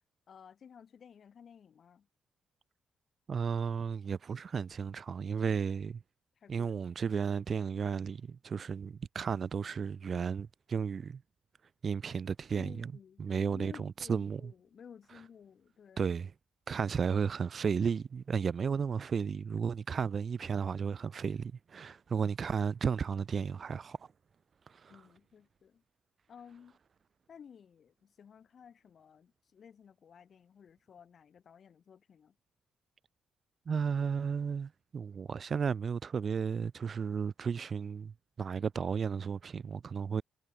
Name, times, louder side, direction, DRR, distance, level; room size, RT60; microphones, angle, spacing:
voice 1, 0.3-2.1 6.4-6.8 12.5-16.1 24.9-25.8 26.3-26.8 27.3-32.3, left 7 dB, 50° left, 5.2 m, -55 dB
voice 2, 3.3-6.0 6.5-11.2 11.8-12.9 13.2-14.5 16.0-16.3 16.7-24.0 24.7-24.9 33.7-38.1 38.4-40.2, right 6 dB, 45° right, 0.3 m, -33 dB
cardioid pair, 90°, 0 cm